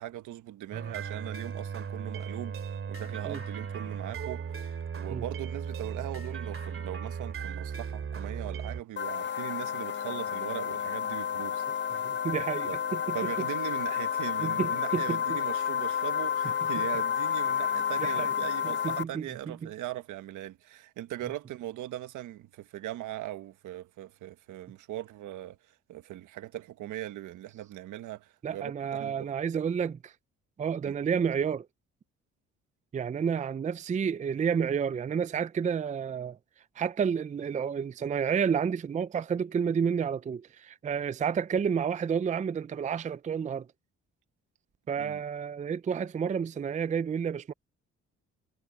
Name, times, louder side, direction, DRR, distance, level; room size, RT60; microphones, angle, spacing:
voice 1, 0.0-11.6 11.9-12.4 12.7-12.8 13.1-25.6 25.9-29.3 30.8-30.9 45.0-45.2, right 13 dB, 85° right, 1.5 m, -40 dB
sound 1, 0.7-8.8, right 6 dB, 45° right, 2.5 m, -36 dB
sound 2, 9.0-19.0, left 8 dB, 35° left, 0.8 m, -30 dB
voice 2, 11.9-13.2 14.4-15.4 18.0-18.3 18.6-19.7 28.4-30.1 30.6-31.7 32.9-36.4 36.8-43.7 44.9-47.5, right 7 dB, 25° right, 0.4 m, -30 dB
cardioid pair, 90°, 30 cm